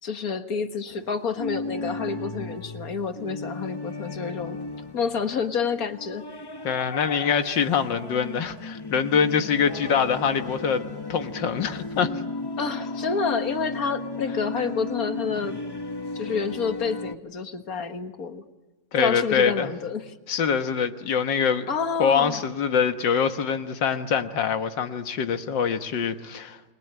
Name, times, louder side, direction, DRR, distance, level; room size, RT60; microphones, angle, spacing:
voice 1, 0.0-4.6 4.9-6.2 12.6-15.6 16.1-18.4 19.0-20.1 21.7-22.4, left 5 dB, 55° left, 1.8 m, -29 dB
sound 1, 0.9-17.1, left 3 dB, 30° left, 0.4 m, -35 dB
voice 2, 6.6-10.8 11.1-12.1 18.9-19.7 20.3-21.7 22.0-26.6, left 7 dB, 85° left, 2.0 m, -24 dB
29.0 x 21.5 x 9.4 m
omnidirectional pair, 1.9 m